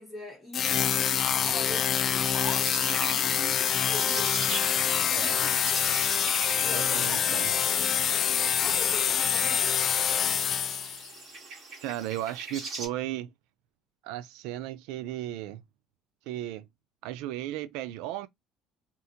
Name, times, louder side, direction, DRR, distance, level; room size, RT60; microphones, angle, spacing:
voice 1, 0.0-4.7 5.2-5.9 6.6-8.3 8.6-10.0, left 1 dB, 10° left, 1.0 m, -42 dB
sound 1, 0.5-11.1, left 8 dB, 40° left, 0.4 m, -26 dB
sound 2, 2.6-12.9, right 3 dB, 35° right, 2.0 m, -41 dB
voice 2, 5.1-5.4 6.7-7.5 11.8-13.3 14.0-15.6 16.3-16.7 17.0-18.3, right 13 dB, 90° right, 0.4 m, -35 dB
3.8 x 2.4 x 2.7 m
cardioid pair, 155°, 0 cm